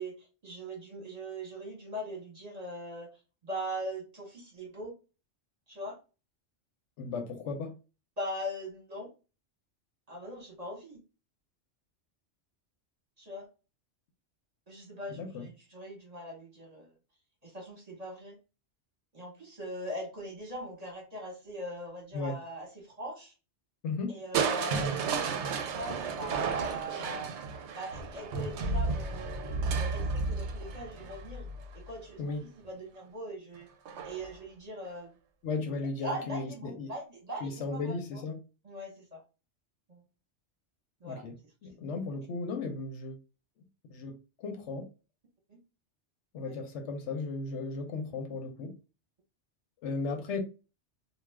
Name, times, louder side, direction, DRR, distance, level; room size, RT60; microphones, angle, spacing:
voice 1, 0.0-3.1 3.4-4.9 5.7-6.0 8.2-9.1 10.1-11.0 13.2-13.5 14.7-16.9 17.4-18.4 19.1-23.3 24.1-27.3 27.7-32.2 32.6-33.7 34.0-35.2 36.0-38.2 38.6-39.2 39.9-40.0 41.0-41.2 45.5-45.6 46.5-46.6, equal, 35° right, 1.0 m, -41 dB
voice 2, 7.0-7.8 15.1-15.5 22.1-22.4 23.8-24.2 32.2-32.5 35.4-36.9 37.4-38.4 41.0-41.4 41.6-43.2 43.9-44.9 46.3-48.8 49.8-50.4, left 3 dB, 80° left, 1.0 m, -35 dB
Crushing, 24.3-32.3 33.9-34.4 34.9-35.0, right 4 dB, 75° right, 0.8 m, -33 dB
2.4 x 2.3 x 3.2 m
omnidirectional pair, 1.2 m